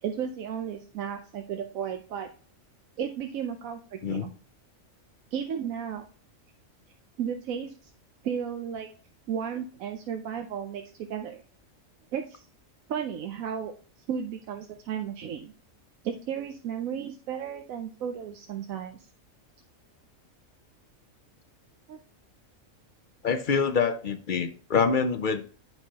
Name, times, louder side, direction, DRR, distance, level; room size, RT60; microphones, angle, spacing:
voice 1, 0.0-2.3 3.0-4.3 5.3-6.0 7.2-7.9 8.2-8.9 9.3-10.8 11.1-11.4 12.1-12.5 12.9-13.7 14.1-15.5 16.0-19.0 21.9-22.0, right 8 dB, 90° right, 4 dB, 1.1 m, -34 dB
voice 2, 23.2-25.5, left 5 dB, 55° left, 9 dB, 0.6 m, -26 dB
8.9 x 5.7 x 2.8 m, 0.39 s
omnidirectional pair, 1.4 m